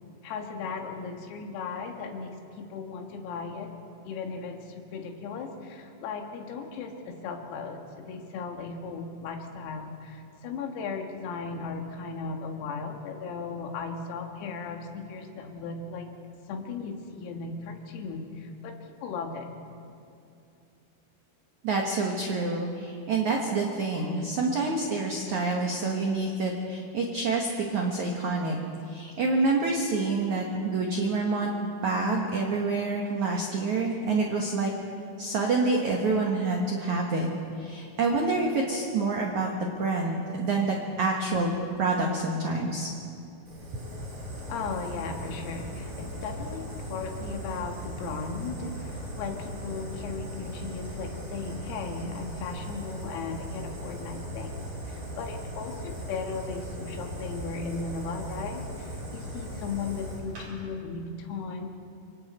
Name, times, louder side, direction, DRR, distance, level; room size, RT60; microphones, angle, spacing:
voice 1, 0.2-3.7 4.1-16.1 16.5-19.5 43.8-54.5 54.9-61.7, left 4 dB, 85° left, 3 dB, 4.5 m, -36 dB
voice 2, 21.6-28.6 28.9-34.7 35.2-37.3 37.6-41.5 41.8-42.9, right 3 dB, 85° right, 0 dB, 1.6 m, -27 dB
Fire, 43.5-60.5, equal, 35° right, 5.9 m, -38 dB
28.0 x 25.0 x 4.4 m, 2.6 s
omnidirectional pair, 5.9 m